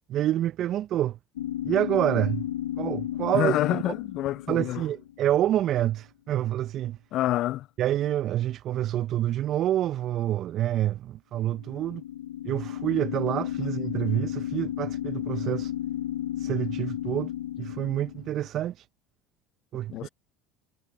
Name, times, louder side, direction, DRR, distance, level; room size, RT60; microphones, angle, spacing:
voice 1, 0.1-1.2 1.6-2.5 2.8-3.8 4.5-7.0 7.8-12.0 12.4-15.7 16.4-17.3 17.6-18.9 19.7-20.1, right 12 dB, 50° right, 1.1 m, -27 dB
sound 1, 1.4-5.4 11.5-18.5, left 12 dB, 80° left, 1.7 m, -33 dB
voice 2, 3.3-4.8 7.1-7.7 19.9-20.1, left 14 dB, 55° left, 0.6 m, -27 dB
hypercardioid pair, 70°, 0 cm